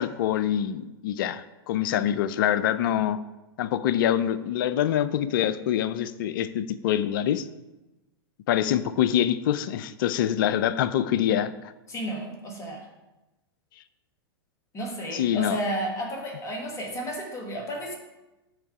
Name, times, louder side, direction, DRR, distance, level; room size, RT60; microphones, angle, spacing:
voice 1, 0.0-3.2 3.6-7.5 8.5-11.7 15.1-15.6, left 10 dB, 55° left, 15 dB, 0.4 m, -25 dB
voice 2, 11.9-12.8 14.7-18.0, right 1 dB, 25° left, 1 dB, 1.6 m, -32 dB
8.0 x 3.6 x 4.7 m, 1.0 s
hypercardioid pair, 105°, 13 cm